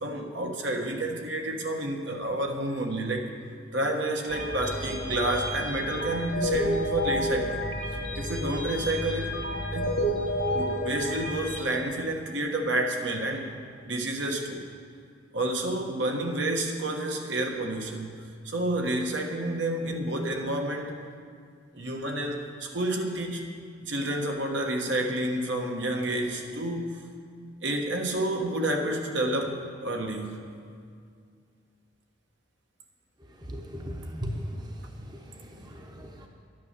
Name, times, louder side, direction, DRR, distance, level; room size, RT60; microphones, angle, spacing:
voice 1, 0.0-3.3 3.7-7.8 8.2-9.3 9.7-9.9 10.5-13.6 13.8-14.6 15.3-20.9 21.7-23.5 23.8-27.0 27.6-30.4, right 1 dB, 70° right, 2 dB, 1.3 m, -29 dB
sound 1, 4.3-11.6, equal, 75° left, 1.6 m, -30 dB
voice 2, 33.5-34.7 35.1-36.3, equal, 20° right, 2 dB, 0.9 m, -37 dB
11.5 x 9.5 x 6.7 m, 2.2 s
head